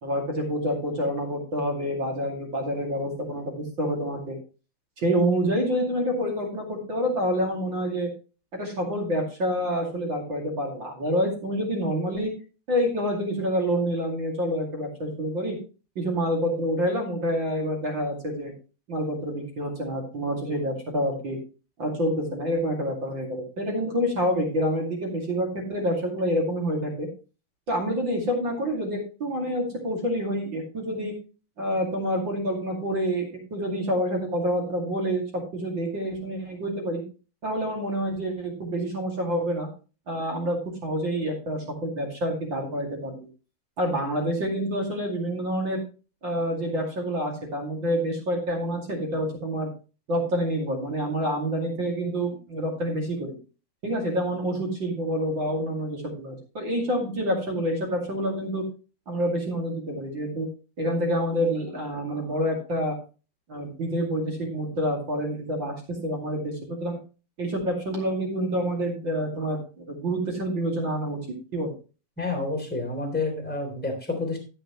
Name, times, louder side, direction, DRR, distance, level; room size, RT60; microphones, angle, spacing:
voice 1, 0.0-4.4 5.0-8.1 8.5-12.3 12.7-15.6 16.0-18.5 18.9-21.4 21.8-27.1 27.7-31.1 31.6-37.0 37.4-39.7 40.1-43.3 43.8-45.8 46.2-49.7 50.1-53.4 53.8-58.6 59.1-60.5 60.8-62.9 63.5-67.0 67.4-71.2 71.5-71.7, equal, 35° right, 1 dB, 2.6 m, -27 dB
voice 2, 72.2-74.4, left 3 dB, 5° left, 2 dB, 2.5 m, -29 dB
13.0 x 7.9 x 3.1 m, 0.34 s
omnidirectional pair, 4.5 m